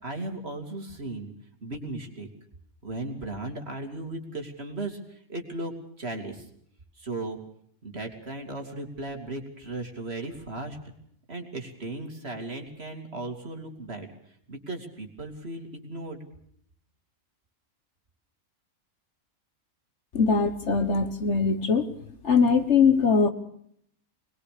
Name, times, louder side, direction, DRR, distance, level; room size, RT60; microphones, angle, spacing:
voice 1, 0.0-1.3 1.6-2.3 2.8-6.4 7.0-7.4 7.8-10.8 11.3-14.1 14.5-16.2, right 2 dB, 45° right, 4 dB, 3.0 m, -36 dB
voice 2, 20.1-21.9 22.2-23.3, left 5 dB, 55° left, 9 dB, 1.6 m, -21 dB
23.0 x 20.5 x 6.7 m, 0.67 s
omnidirectional pair, 1.5 m